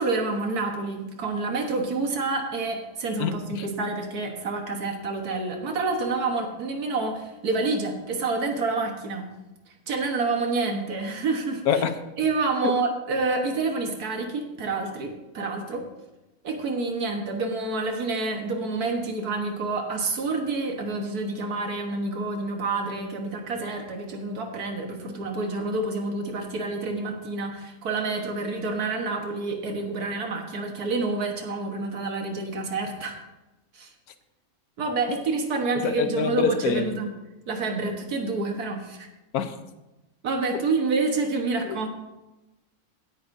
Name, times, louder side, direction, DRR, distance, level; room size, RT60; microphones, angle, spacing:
voice 1, 0.0-9.3 9.7-11.8 12.2-15.9 16.4-33.2 33.7-33.9 34.8-37.1 37.5-39.1 40.2-41.9, right 3 dB, 85° right, 3 dB, 1.8 m, -28 dB
voice 2, 3.2-3.7 11.7-12.0 12.6-12.7 35.8-36.9 39.3-39.5 41.7-41.8, left 7 dB, 80° left, 10 dB, 1.2 m, -26 dB
17.0 x 9.2 x 2.7 m, 1.0 s
omnidirectional pair, 1.6 m